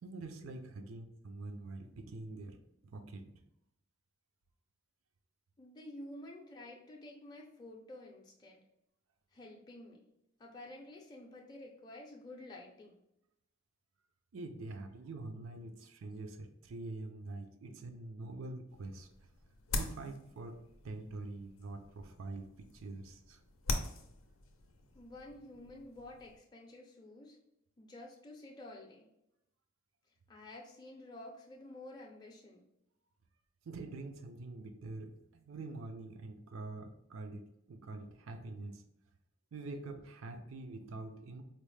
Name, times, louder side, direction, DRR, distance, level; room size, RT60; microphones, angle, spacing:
voice 1, 0.0-3.4 14.3-19.3 19.8-23.4 33.6-38.8 39.5-41.4, right 2 dB, 90° right, 7 dB, 0.5 m, -45 dB
voice 2, 5.6-8.6 9.3-10.1 10.4-13.0 24.9-27.4 27.8-29.1 30.3-32.7, left 1 dB, 20° left, -2 dB, 0.5 m, -51 dB
sound 1, 18.7-26.4, left 2 dB, 85° left, 0.5 m, -43 dB
4.3 x 2.0 x 3.2 m, 0.81 s
head